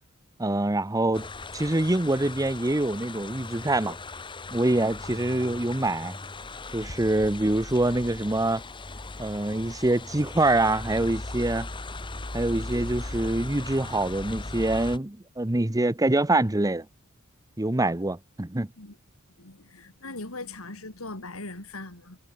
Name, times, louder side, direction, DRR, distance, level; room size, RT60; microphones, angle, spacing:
voice 1, 0.4-1.3 1.5-4.0 4.5-6.2 6.7-8.6 9.2-11.7 12.3-16.9 17.6-18.7, right 2 dB, 15° right, 0.9 m, -25 dB
sound 1, 1.1-15.0, left 2 dB, 25° left, 1.1 m, -38 dB
voice 2, 19.4-22.2, left 2 dB, 90° left, 4.7 m, -40 dB
head